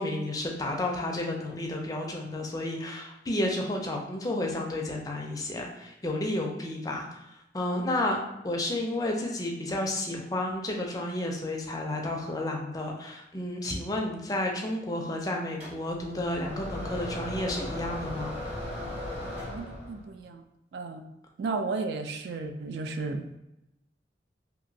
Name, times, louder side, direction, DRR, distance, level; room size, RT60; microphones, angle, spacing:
voice 1, 0.0-7.2 7.5-8.2 8.4-18.4, left 1 dB, 20° left, 0 dB, 0.4 m, -31 dB
sound 1, 15.6-20.1, left 1 dB, 35° right, 1.1 m, -37 dB
voice 2, 19.5-20.4 20.7-21.1 21.4-23.4, right 3 dB, 65° right, 5 dB, 0.3 m, -34 dB
2.9 x 2.5 x 2.6 m, 0.89 s
head